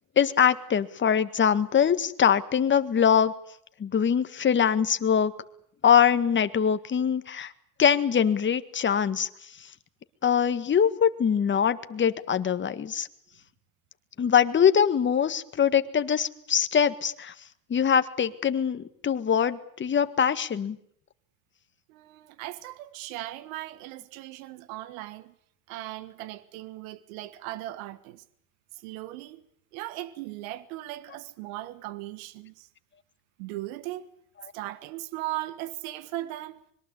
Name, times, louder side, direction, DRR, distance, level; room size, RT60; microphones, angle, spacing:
voice 1, 0.2-3.3 3.8-5.3 5.8-7.5 7.8-9.3 10.2-13.1 14.2-17.3 17.7-20.8, left 8 dB, 30° left, 1.8 m, -23 dB
voice 2, 21.9-25.3 25.7-28.2 28.7-29.4 29.7-32.7 33.4-34.1 34.5-36.6, right 16 dB, 85° right, 1.5 m, -38 dB
25.5 x 22.5 x 8.5 m
supercardioid pair, 115°, 40 cm